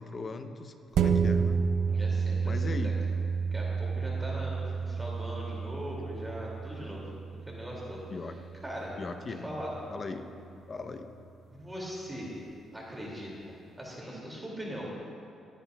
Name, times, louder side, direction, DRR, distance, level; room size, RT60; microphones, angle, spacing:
voice 1, 0.0-1.6 2.4-2.9 6.8-7.0 8.1-8.4 9.0-9.6 9.9-10.3 10.7-11.1, left 4 dB, 40° left, 7 dB, 0.8 m, -39 dB
sound 1, 0.9-9.8 10.2-10.3, right 5 dB, 75° right, 0.6 m, -31 dB
voice 2, 1.9-2.9 3.5-7.0 7.5-8.0 8.6-9.0 9.4-9.7 11.5-12.3 12.7-15.1, equal, 15° right, -4 dB, 2.5 m, -40 dB
20.5 x 10.0 x 2.3 m, 2.5 s
cardioid pair, 90°, 0 cm